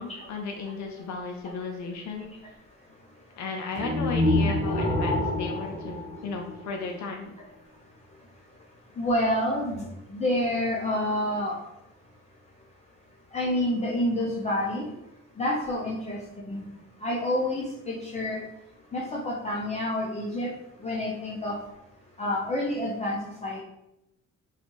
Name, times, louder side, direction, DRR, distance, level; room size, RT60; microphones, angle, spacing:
voice 1, 0.0-2.6 3.4-7.3, left 4 dB, 70° left, 2 dB, 0.5 m, -35 dB
sound 1, 3.8-6.9, left 1 dB, 25° right, 1.3 m, -27 dB
voice 2, 9.0-9.9 10.1-11.6 13.3-14.9 15.4-16.2 16.4-16.6 17.0-18.4 18.9-20.5 20.8-21.5 22.2-23.6, left 1 dB, 20° left, -5 dB, 0.6 m, -28 dB
2.5 x 2.3 x 3.0 m, 0.86 s
cardioid pair, 90°, 30 cm